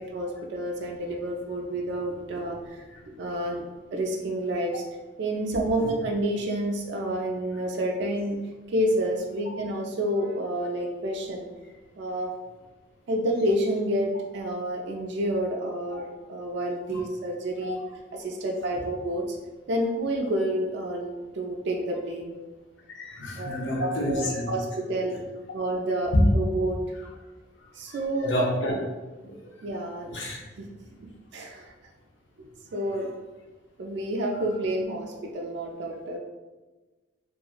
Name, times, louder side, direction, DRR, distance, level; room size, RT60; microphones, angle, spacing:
voice 1, 0.1-2.8 3.2-3.6 3.9-4.8 5.2-8.4 8.7-11.5 12.0-12.3 13.1-17.8 18.1-19.4 19.7-22.3 23.4-25.2 25.5-26.8 27.8-28.4 29.6-30.1 31.0-31.7 32.4-33.1 33.8-36.2, right 1 dB, 60° right, 0 dB, 0.4 m, -29 dB
voice 2, 22.9-24.5 26.1-26.3 27.9-28.7 29.2-29.3 30.1-30.4, left 1 dB, 70° left, -1 dB, 0.6 m, -28 dB
2.9 x 2.4 x 2.3 m, 1.2 s
head